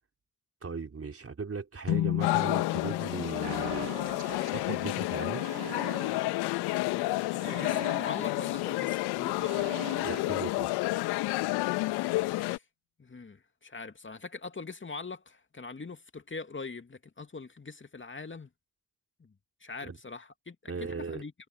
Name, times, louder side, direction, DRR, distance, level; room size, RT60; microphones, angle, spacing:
voice 1, 0.6-3.9 4.5-5.5 10.0-10.7 19.8-20.0 20.7-21.2, right 5 dB, 35° right, 3.9 m, -38 dB
sound 1, 1.9-5.4, left 13 dB, 60° left, 2.6 m, -34 dB
sound 2, 2.2-12.6, left 20 dB, 75° left, 1.7 m, -30 dB
Alarm, 3.4-11.2, right 11 dB, 65° right, 3.9 m, -45 dB
voice 2, 6.8-9.5 12.0-12.6 13.0-18.5 19.2-19.3 19.6-21.3, left 4 dB, 30° left, 2.6 m, -43 dB
hypercardioid pair, 40°, 39 cm